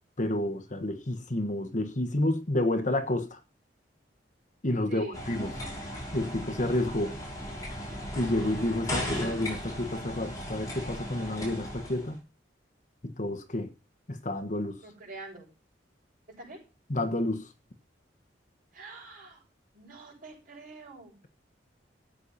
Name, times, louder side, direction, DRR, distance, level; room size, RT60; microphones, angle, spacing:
voice 1, 0.2-3.4 4.6-5.5 6.1-7.2 8.1-12.2 13.0-13.7 14.1-14.8 16.9-17.4, left 1 dB, 45° left, 1.3 m, -30 dB
voice 2, 4.9-5.3 14.8-15.5 16.4-16.6 18.7-19.4 19.7-21.2, right 3 dB, 50° right, 7.6 m, -45 dB
sound 1, 5.1-12.2, left 1 dB, 20° left, 6.0 m, -36 dB
13.5 x 8.5 x 4.2 m
head